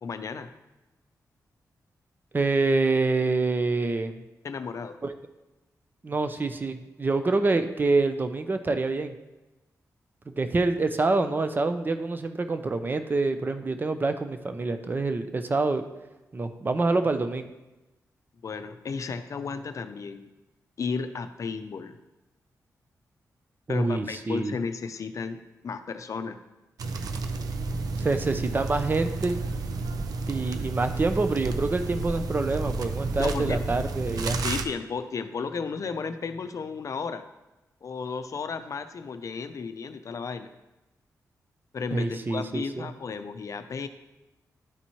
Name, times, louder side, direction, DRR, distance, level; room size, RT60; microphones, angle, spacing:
voice 1, 0.0-0.5 4.4-5.0 18.4-20.3 20.8-22.0 23.7-26.4 33.2-33.6 34.4-37.3 37.8-40.5 41.7-43.9, left 5 dB, 55° left, 9 dB, 0.5 m, -33 dB
voice 2, 2.3-4.2 5.0-5.1 6.0-9.1 10.4-15.8 16.3-17.5 23.7-24.5 28.0-29.4 30.3-34.4 41.9-42.9, right 3 dB, 30° right, 8 dB, 0.6 m, -26 dB
sound 1, 26.8-34.6, right 3 dB, 80° right, 0.5 m, -31 dB
11.5 x 4.2 x 3.0 m, 1.0 s
cardioid pair, 90°, 6 cm